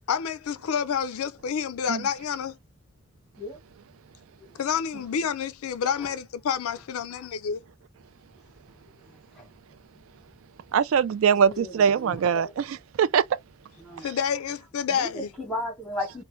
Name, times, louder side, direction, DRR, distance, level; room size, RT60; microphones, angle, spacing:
voice 1, 0.1-2.6 4.6-7.6 14.0-15.3, left 7 dB, 85° left, 0.4 m, -28 dB
voice 2, 10.7-13.2, right 7 dB, 70° right, 0.3 m, -22 dB
voice 3, 11.4-12.5 13.8-14.1 14.9-16.2, left 1 dB, ahead, 0.9 m, -35 dB
2.7 x 2.1 x 3.0 m
head